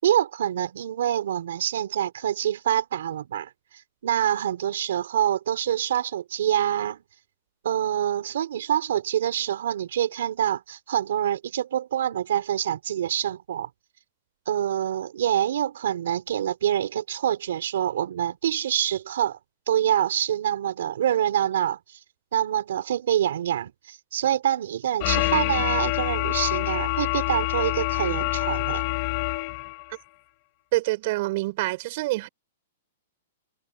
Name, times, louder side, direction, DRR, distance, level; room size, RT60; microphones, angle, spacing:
voice 1, 0.0-7.0 7.6-13.7 14.5-19.4 19.7-22.0 22.3-28.8, right 10 dB, 70° right, 4.3 m, -26 dB
sound 1, 25.0-29.8, left 23 dB, 35° left, 4.0 m, -26 dB
voice 2, 30.7-32.3, right 20 dB, 45° right, 6.1 m, -26 dB
hypercardioid pair, 160°, 0 cm